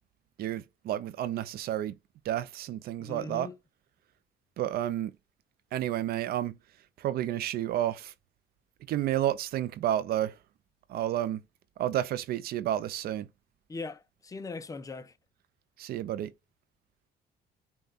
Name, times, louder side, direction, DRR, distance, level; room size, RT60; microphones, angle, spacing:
voice 1, 0.4-2.0 2.2-3.5 4.6-5.1 5.7-6.6 7.0-8.1 8.9-10.3 10.9-11.4 11.8-13.3 15.8-16.3, right 12 dB, 65° right, 0.5 m, -30 dB
voice 2, 3.0-3.6 13.7-15.2, left 3 dB, 20° left, 0.6 m, -40 dB
5.5 x 2.4 x 4.0 m
cardioid pair, 110°, 17 cm